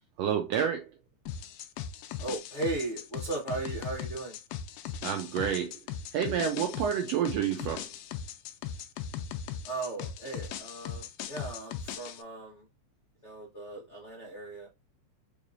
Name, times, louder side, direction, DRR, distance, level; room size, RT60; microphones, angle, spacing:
voice 1, 0.2-0.9 5.0-5.8 6.1-7.9, right 8 dB, 85° right, 1.5 m, -29 dB
sound 1, 1.3-12.2, left 8 dB, 90° left, 1.4 m, -39 dB
voice 2, 2.2-4.4 9.6-12.6 13.2-14.7, right 3 dB, 70° left, 0.6 m, -37 dB
4.5 x 3.3 x 2.5 m
omnidirectional pair, 3.5 m